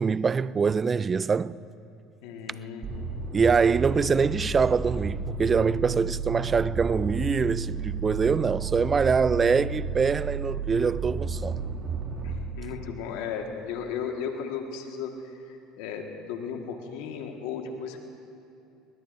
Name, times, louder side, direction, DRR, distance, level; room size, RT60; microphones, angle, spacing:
voice 1, 0.0-1.5 3.3-11.6, right 5 dB, 30° right, 0.4 m, -24 dB
voice 2, 2.2-3.1 12.2-18.0, left 6 dB, 75° left, 1.5 m, -35 dB
sound 1, 2.8-12.4, right 5 dB, 50° right, 2.7 m, -32 dB
21.5 x 20.0 x 2.6 m
supercardioid pair, 95°, 0 cm